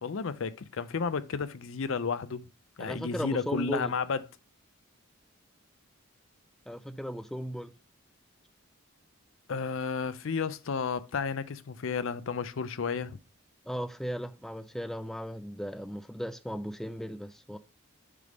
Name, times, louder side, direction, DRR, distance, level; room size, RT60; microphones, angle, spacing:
voice 1, 0.0-2.4 2.8-4.2 9.5-13.2, left 5 dB, 65° left, 0.5 m, -32 dB
voice 2, 2.8-3.9 6.7-7.7 13.6-17.6, equal, ahead, 0.3 m, -36 dB
6.6 x 3.5 x 5.0 m
head